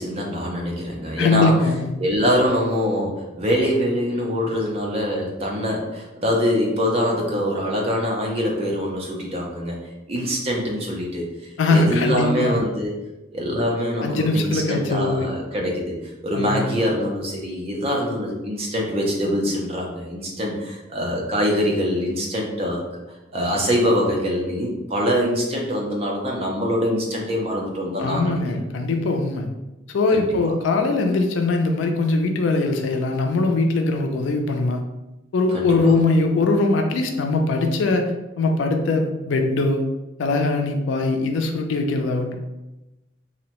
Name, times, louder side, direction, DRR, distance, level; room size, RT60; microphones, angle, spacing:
voice 1, 0.0-1.5 2.0-9.8 10.1-12.9 13.3-15.9 16.2-22.8 23.3-28.4 30.1-30.3 35.5-35.9, equal, 30° right, -1 dB, 0.5 m, -24 dB
voice 2, 1.2-1.9 11.6-12.5 14.0-15.3 16.3-16.8 28.0-29.5 29.9-34.8 35.3-39.8 40.2-42.4, left 3 dB, 75° left, 5 dB, 0.3 m, -21 dB
2.6 x 2.1 x 2.9 m, 1.0 s
head